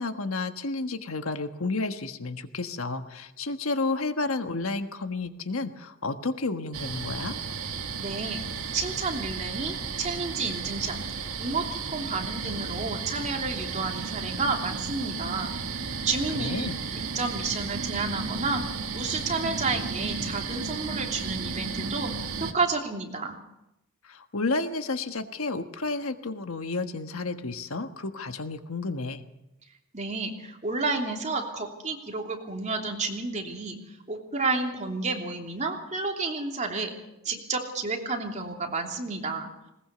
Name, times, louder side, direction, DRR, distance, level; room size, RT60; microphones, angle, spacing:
voice 1, 0.0-7.4 16.3-16.8 24.0-29.2, left 3 dB, 75° left, 8 dB, 1.4 m, -31 dB
sound 1, 6.7-22.5, right 5 dB, 85° right, 1.8 m, -34 dB
voice 2, 8.0-8.4 8.7-11.0 11.4-15.5 16.0-16.7 17.1-18.6 18.9-22.1 22.4-23.4 29.9-36.9 37.2-39.5, right 3 dB, 35° right, 2 dB, 3.1 m, -31 dB
20.5 x 20.0 x 6.9 m, 0.89 s
head